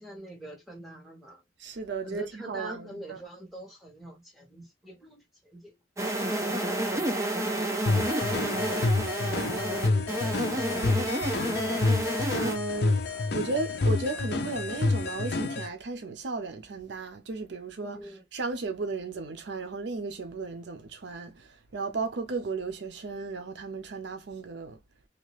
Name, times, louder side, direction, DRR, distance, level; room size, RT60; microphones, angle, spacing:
voice 1, 0.0-1.4 2.0-5.8 6.2-8.7 9.2-10.9 17.8-18.2, right 1 dB, ahead, 1.6 m, -44 dB
voice 2, 1.6-3.2 12.3-13.0 13.3-18.0 18.3-24.8, right 3 dB, 70° right, 0.5 m, -35 dB
sound 1, 6.0-12.6, right 1 dB, 15° right, 0.7 m, -30 dB
sound 2, 7.9-15.7, left 3 dB, 60° left, 0.5 m, -28 dB
2.8 x 2.4 x 3.1 m
head